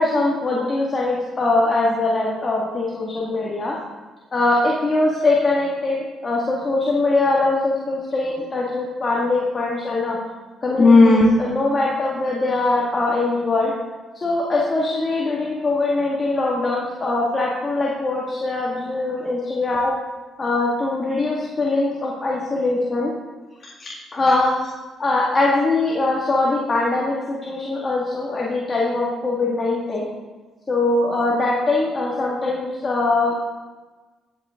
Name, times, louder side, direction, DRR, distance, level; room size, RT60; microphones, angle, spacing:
voice 1, 0.0-3.8 4.3-10.2 10.6-13.7 14.1-19.9 20.4-23.1 23.8-24.5 25.0-30.1 30.7-33.5, left 2 dB, 35° left, -4 dB, 2.1 m, -21 dB
16.0 x 7.9 x 3.8 m, 1.3 s
cardioid pair, 90°, 0 cm